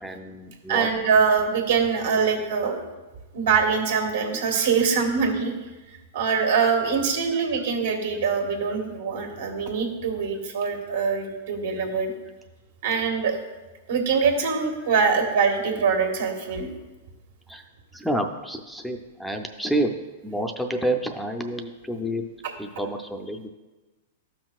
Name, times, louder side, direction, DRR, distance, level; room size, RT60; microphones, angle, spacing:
voice 1, 0.0-0.9 2.7-2.8 14.8-14.9 17.5-17.6 17.9-19.9 20.2-22.3 22.6-23.5, right 1 dB, ahead, 4 dB, 0.5 m, -29 dB
voice 2, 0.7-2.8 3.3-5.5 6.1-12.1 12.8-13.4 13.9-16.7, right 5 dB, 70° right, 3 dB, 1.7 m, -23 dB
12.5 x 6.0 x 2.4 m, 1.2 s
hypercardioid pair, 130°, 0 cm